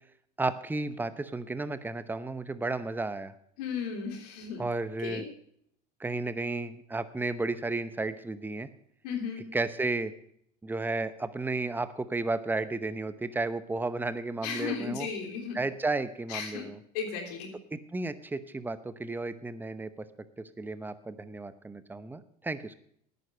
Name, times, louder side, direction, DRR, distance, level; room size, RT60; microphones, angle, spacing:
voice 1, 0.4-3.3 4.6-5.2 6.0-8.7 9.4-10.1 10.6-15.1 15.5-16.8 17.7-20.1 20.4-22.7, right 3 dB, 10° right, 13 dB, 0.9 m, -33 dB
voice 2, 3.6-4.6 5.0-5.2 9.0-9.4 14.4-15.6 16.3-16.6 16.9-17.5, left 6 dB, 80° left, 3 dB, 3.4 m, -35 dB
10.5 x 9.4 x 6.3 m, 0.66 s
supercardioid pair, 95°, 20 cm